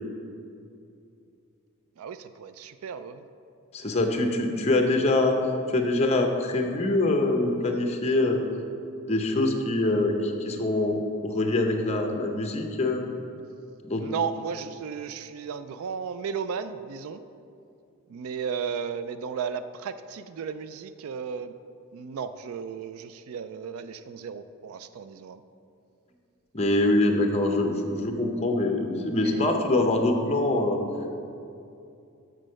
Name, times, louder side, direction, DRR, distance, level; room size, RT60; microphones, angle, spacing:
voice 1, 2.0-3.3 14.0-17.2 18.1-21.5 21.9-25.4 29.2-29.5, right 6 dB, 75° right, 12 dB, 0.3 m, -34 dB
voice 2, 3.7-5.4 5.7-8.4 9.1-13.0 13.8-14.0 26.5-30.8, left 2 dB, 30° left, 3 dB, 0.7 m, -24 dB
6.5 x 6.2 x 6.4 m, 2.6 s
head